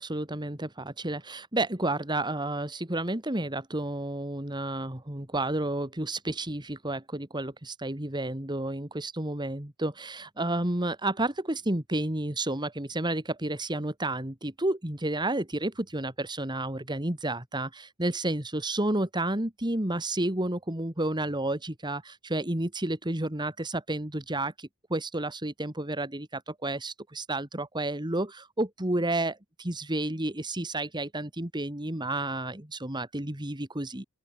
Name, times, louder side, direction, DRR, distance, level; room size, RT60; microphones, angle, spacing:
voice 1, 0.0-34.0, right 1 dB, 20° right, 2.2 m, -31 dB
open air
head